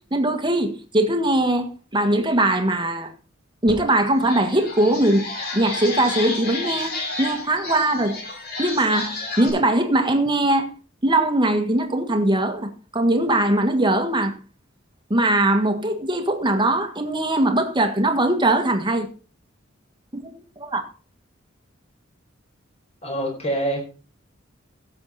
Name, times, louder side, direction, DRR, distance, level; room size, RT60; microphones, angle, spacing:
voice 1, 0.1-3.1 3.6-5.3 5.5-8.2 8.6-10.7 11.0-14.4 15.1-19.1 20.1-20.8, right 1 dB, 25° right, 1.7 m, -21 dB
sound 1, 3.7-3.8 4.1-9.5, left 3 dB, 50° left, 5.0 m, -31 dB
voice 2, 23.0-24.0, right 1 dB, 30° left, 4.7 m, -26 dB
16.0 x 7.6 x 4.3 m
head